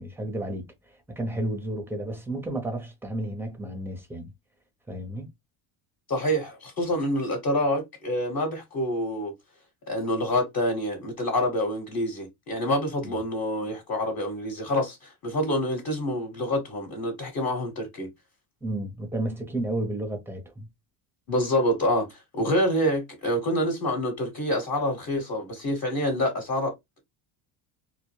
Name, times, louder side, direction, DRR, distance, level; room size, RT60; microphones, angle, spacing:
voice 1, 0.0-4.3 4.9-5.3 13.0-13.1 18.6-20.7, right 1 dB, 5° right, 0.7 m, -32 dB
voice 2, 6.1-9.3 9.9-18.1 21.3-26.8, equal, 35° left, 1.1 m, -27 dB
2.3 x 2.1 x 3.1 m
supercardioid pair, 105°, 50 cm